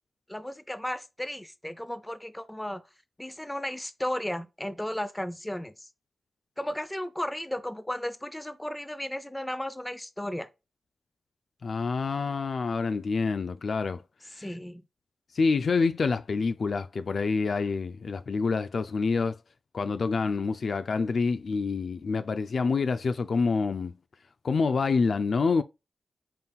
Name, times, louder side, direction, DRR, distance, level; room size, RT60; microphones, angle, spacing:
voice 1, 0.3-2.8 3.2-5.9 6.6-10.5 14.4-14.8, left 1 dB, 10° left, 0.7 m, -34 dB
voice 2, 11.6-14.0 14.3-14.5 15.3-19.4 19.7-24.0 24.4-25.6, left 4 dB, 65° left, 0.3 m, -27 dB
5.4 x 4.1 x 2.3 m
cardioid pair, 55°, 0 cm